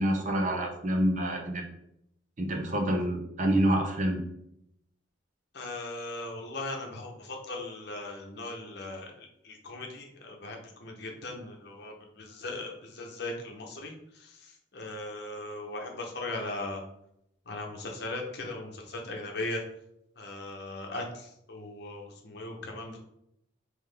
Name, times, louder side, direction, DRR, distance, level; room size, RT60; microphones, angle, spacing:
voice 1, 0.0-1.7 2.4-4.2, right 1 dB, 40° right, 2 dB, 0.7 m, -27 dB
voice 2, 5.5-16.8 17.5-19.6 20.2-23.0, left 2 dB, 60° left, 1 dB, 0.8 m, -38 dB
3.8 x 3.0 x 3.4 m, 0.76 s
head